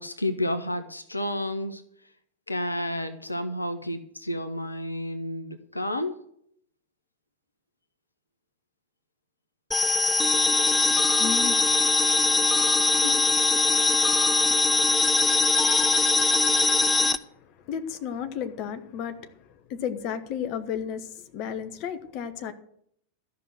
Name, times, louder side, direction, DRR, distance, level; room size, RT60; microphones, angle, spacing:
voice 1, 0.0-1.8 2.5-6.2, left 1 dB, 85° left, 0.8 m, -31 dB
sound 1, 9.7-17.2, left 3 dB, 15° left, 0.6 m, -21 dB
voice 2, 11.2-22.5, left 8 dB, 40° left, 1.1 m, -36 dB
13.5 x 5.8 x 7.8 m
figure-of-eight pair, 90°, 0 cm